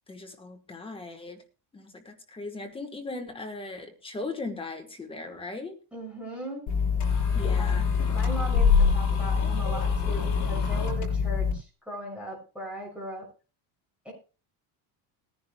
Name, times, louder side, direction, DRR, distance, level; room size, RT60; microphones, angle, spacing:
voice 1, 0.1-1.4 1.7-5.7 7.3-7.8, left 3 dB, 15° left, 4 dB, 1.2 m, -38 dB
voice 2, 5.9-6.6 7.4-13.3 14.0-14.1, right 1 dB, 5° right, -3 dB, 6.4 m, -38 dB
sound 1, 6.7-11.5, left 6 dB, 45° left, 6.2 m, -24 dB
20.5 x 10.5 x 2.2 m, 0.34 s
cardioid pair, 165°, 41 cm